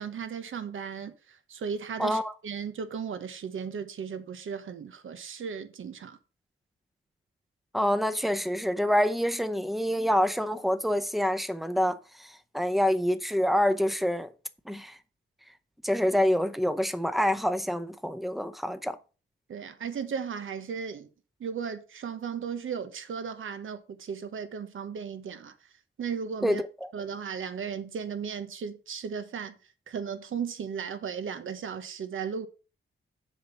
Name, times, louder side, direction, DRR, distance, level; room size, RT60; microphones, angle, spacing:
voice 1, 0.0-6.2 19.5-21.1 21.4-25.5 26.0-26.6 26.9-29.5 29.9-32.5, right 6 dB, 80° right, 1.1 m, -36 dB
voice 2, 2.0-2.3 7.7-14.3 14.7-15.0 15.8-19.0 26.4-26.9, equal, ahead, 0.7 m, -27 dB
7.5 x 5.5 x 5.6 m
wide cardioid pair, 120°, 20 cm